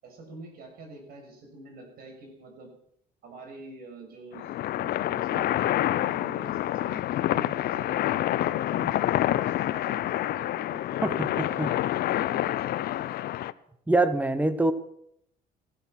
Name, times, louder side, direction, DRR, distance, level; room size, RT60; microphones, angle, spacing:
voice 1, 0.0-2.7 3.2-12.7, right 3 dB, 65° right, 2 dB, 7.0 m, -46 dB
sound 1, 4.3-13.5, left 13 dB, 65° left, 0.7 m, -27 dB
voice 2, 11.0-11.7 13.9-14.7, right 2 dB, 10° right, 13 dB, 1.3 m, -24 dB
15.5 x 14.0 x 6.2 m, 0.71 s
cardioid pair, 110°, 17 cm